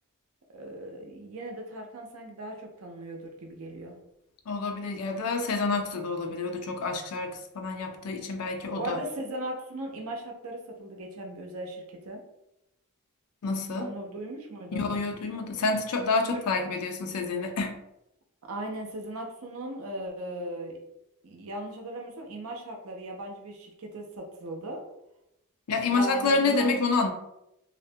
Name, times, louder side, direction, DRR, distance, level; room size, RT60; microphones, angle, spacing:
voice 1, 0.5-3.9 8.8-12.2 13.8-14.9 16.3-16.4 18.4-20.8 21.2-24.8 25.9-26.8, right 1 dB, 70° right, 2 dB, 0.5 m, -38 dB
voice 2, 4.5-9.0 13.4-13.9 14.7-17.8 25.7-27.1, left 3 dB, 85° left, 5 dB, 0.4 m, -28 dB
2.4 x 2.1 x 2.6 m, 0.86 s
head